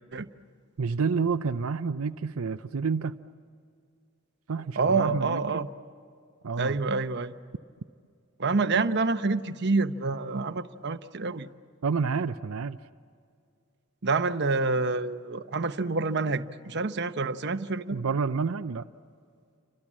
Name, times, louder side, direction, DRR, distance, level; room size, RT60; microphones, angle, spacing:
voice 1, 0.8-3.2 4.5-5.6 6.4-6.8 11.8-12.8 17.9-18.9, right 5 dB, 80° right, 8 dB, 0.6 m, -29 dB
voice 2, 4.8-5.7 6.6-7.3 8.4-11.5 14.0-18.0, right 3 dB, 55° right, 9 dB, 1.0 m, -27 dB
30.0 x 26.0 x 7.4 m, 2.3 s
head